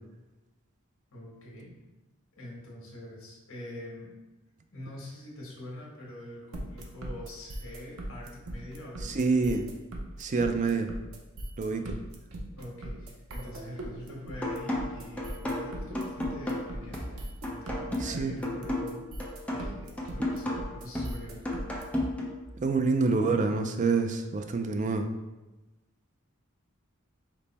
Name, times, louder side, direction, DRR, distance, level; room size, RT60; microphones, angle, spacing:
voice 1, 1.1-1.7 2.3-4.1 4.7-9.2 11.7-11.9 12.5-19.1 19.5-21.4, left 1 dB, 75° left, -4 dB, 1.4 m, -44 dB
sound 1, 6.5-21.8, right 1 dB, 90° right, 0.7 m, -39 dB
voice 2, 9.0-9.7 10.2-10.9 11.6-12.0 18.0-18.3 22.6-25.1, right 4 dB, 35° right, 6 dB, 0.4 m, -27 dB
sound 2, 14.4-22.4, left 1 dB, 5° left, 0.6 m, -34 dB
5.2 x 2.1 x 4.1 m, 1.1 s
head